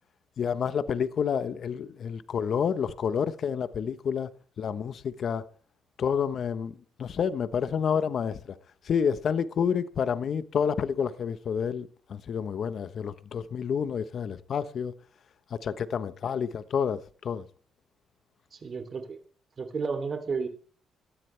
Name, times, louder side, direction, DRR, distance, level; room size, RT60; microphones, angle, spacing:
voice 1, 0.4-4.3 4.6-5.5 6.0-6.7 7.0-8.4 8.8-14.9 15.5-17.4, left 7 dB, 55° left, 1.1 m, -29 dB
voice 2, 18.5-19.2 19.6-20.5, right 5 dB, 40° right, 3.3 m, -32 dB
18.5 x 13.0 x 3.4 m
cardioid pair, 90°, 0 cm